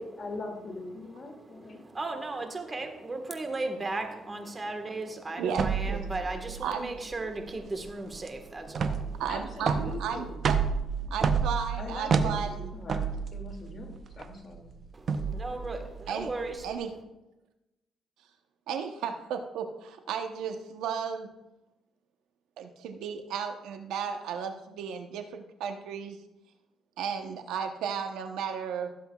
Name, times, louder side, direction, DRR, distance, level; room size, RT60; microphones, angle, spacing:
voice 1, 0.0-1.8 9.3-10.4 11.0-11.1 11.8-14.8, left 2 dB, 40° left, 1 dB, 2.4 m, -41 dB
voice 2, 1.0-9.2 14.9-16.9, right 2 dB, 25° right, 5 dB, 1.4 m, -36 dB
voice 3, 5.4-6.0 6.6-6.9 9.2-10.6 11.1-12.7 16.1-16.3 16.6-16.9 18.7-21.3 22.6-26.2 27.0-28.9, right 7 dB, 90° right, 6 dB, 0.9 m, -34 dB
sound 1, 5.5-16.7, right 5 dB, 50° right, 0.7 m, -31 dB
16.0 x 7.6 x 2.4 m, 0.98 s
cardioid pair, 90°, 0 cm